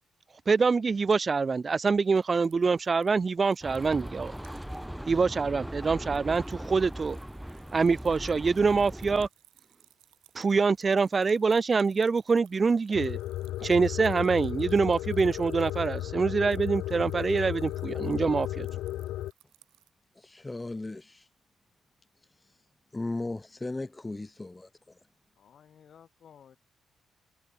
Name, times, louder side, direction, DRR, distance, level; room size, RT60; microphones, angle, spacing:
voice 1, 0.5-4.3 5.1-7.2 7.7-9.3 10.3-13.2 13.6-18.7, right 4 dB, 40° right, 0.3 m, -25 dB
sound 1, 2.2-4.9 5.3-5.4 5.7-19.9, right 17 dB, 85° right, 2.2 m, -62 dB
tram passing by, 3.6-9.3, equal, 5° right, 2.0 m, -39 dB
sound 2, 12.9-19.3, left 14 dB, 80° left, 0.7 m, -34 dB
voice 2, 20.2-21.2 22.9-24.7, left 2 dB, 20° left, 0.4 m, -36 dB
voice 3, 25.4-26.6, left 8 dB, 65° left, 1.5 m, -55 dB
hypercardioid pair, 45°, 0 cm